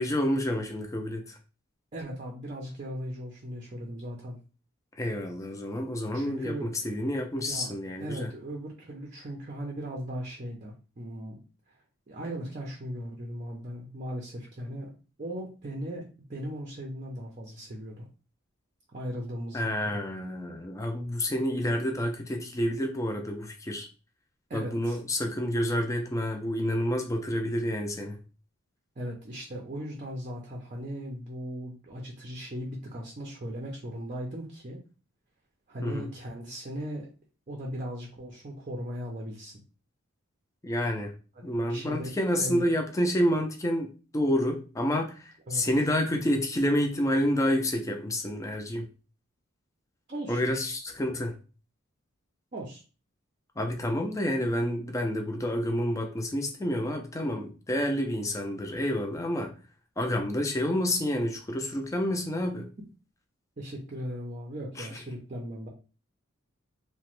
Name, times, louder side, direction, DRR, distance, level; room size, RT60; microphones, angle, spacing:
voice 1, 0.0-1.4 5.0-8.3 19.5-23.9 24.5-28.2 35.8-36.1 40.6-41.1 41.4-48.9 50.3-51.3 53.6-59.5 60.0-62.7 64.8-65.0, equal, 15° left, 3 dB, 0.4 m, -29 dB
voice 2, 1.9-4.4 6.1-6.7 7.5-7.7 8.0-11.4 12.1-14.9 15.2-16.0 16.3-18.1 18.9-20.0 24.5-25.0 29.0-34.8 35.7-37.1 37.5-39.5 41.4-42.1 42.4-42.7 45.5-45.6 50.1-50.4 52.5-52.8 63.6-65.7, equal, 35° right, 0 dB, 0.5 m, -38 dB
2.9 x 2.1 x 3.0 m, 0.35 s
head